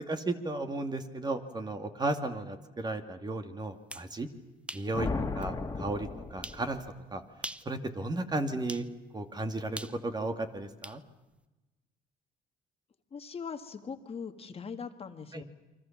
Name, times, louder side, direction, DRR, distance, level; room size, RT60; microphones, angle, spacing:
voice 1, 0.0-4.3 4.7-5.1 5.3-6.8 7.1-7.2 7.7-8.8 9.1-11.0 15.3-15.4, right 2 dB, 25° right, 7 dB, 2.3 m, -34 dB
sound 1, 3.7-4.1 4.7-4.9 5.4-5.5 6.4-6.6 7.3-7.7 8.7-8.9 9.8-11.0, right 1 dB, 5° right, 0.8 m, -42 dB
sound 2, 4.9-6.9, left 3 dB, 20° left, 2.6 m, -35 dB
voice 2, 13.1-15.4, left 6 dB, 35° left, 7 dB, 1.8 m, -41 dB
29.0 x 24.5 x 7.3 m, 1.1 s
cardioid pair, 110°, 17 cm